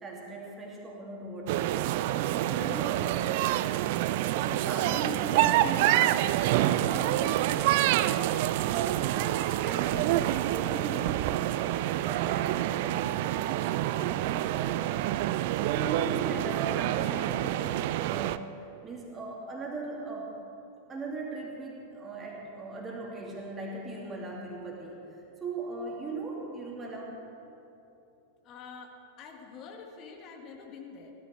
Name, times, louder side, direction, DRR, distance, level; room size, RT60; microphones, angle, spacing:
voice 1, 0.0-3.7 4.4-6.2 6.4-8.3 8.7-11.8 12.0-15.0 15.6-20.3 20.9-25.0 25.4-27.2, right 3 dB, 20° right, -2 dB, 2.8 m, -39 dB
sound 1, 1.5-18.4, right 14 dB, 50° right, 0.4 m, -27 dB
voice 2, 28.4-31.1, left 5 dB, 35° left, 2 dB, 1.8 m, -46 dB
16.0 x 14.0 x 4.6 m, 2.9 s
figure-of-eight pair, 90°, 0 cm